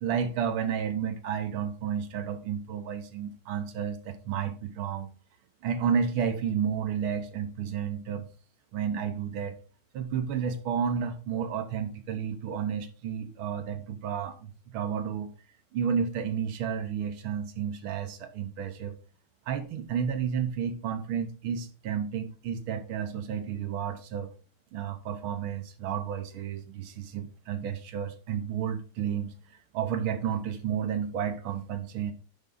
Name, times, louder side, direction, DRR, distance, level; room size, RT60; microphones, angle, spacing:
voice 1, 0.0-5.1 5.6-8.3 8.7-9.6 9.9-15.3 15.7-19.0 19.5-24.3 24.7-29.3 29.7-32.1, right 7 dB, 80° right, 1.7 m, -31 dB
10.5 x 3.6 x 3.9 m
omnidirectional pair, 2.3 m